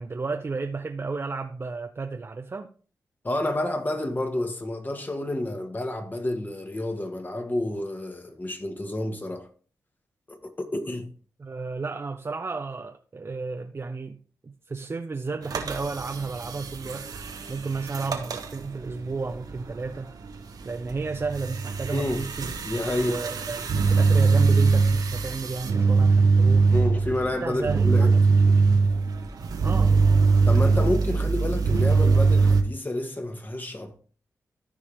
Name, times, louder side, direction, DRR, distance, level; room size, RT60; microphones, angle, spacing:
voice 1, 0.0-2.7 11.4-14.2 14.4-17.1 17.5-20.1 20.6-22.5 23.0-26.7 27.4-28.9 29.6-30.0, right 4 dB, 40° right, 0.7 m, -33 dB
voice 2, 3.2-9.5 10.3-11.1 21.9-22.2 22.6-23.2 26.7-28.1 30.4-34.0, left 1 dB, 30° left, 1.9 m, -29 dB
sound 1, 15.4-32.6, right 4 dB, 75° right, 1.2 m, -22 dB
14.0 x 4.9 x 3.6 m
cardioid pair, 65°, 7 cm